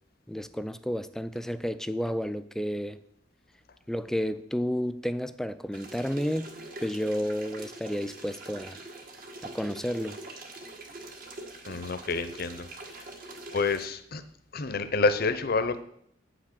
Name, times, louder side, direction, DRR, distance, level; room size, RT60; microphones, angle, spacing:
voice 1, 0.3-3.0 3.9-6.5 6.8-8.8 9.4-10.2, equal, 5° left, 0.4 m, -31 dB
sound 1, 5.7-13.9, right 2 dB, 50° right, 1.5 m, -44 dB
voice 2, 11.6-12.7 12.9-13.1 13.5-14.2 14.5-15.8, left 3 dB, 55° left, 0.7 m, -28 dB
8.6 x 6.0 x 6.6 m
head